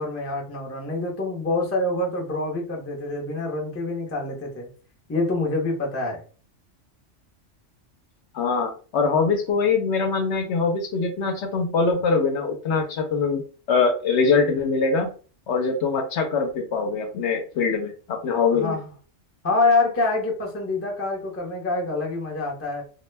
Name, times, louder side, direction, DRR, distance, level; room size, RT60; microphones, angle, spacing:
voice 1, 0.0-4.7 5.1-6.2 18.5-18.9 19.4-22.8, left 2 dB, 20° left, -1 dB, 0.4 m, -26 dB
voice 2, 8.3-13.4 13.7-15.1 15.5-18.8, left 4 dB, 70° left, 5 dB, 0.8 m, -23 dB
2.2 x 2.1 x 3.2 m, 0.39 s
omnidirectional pair, 1.3 m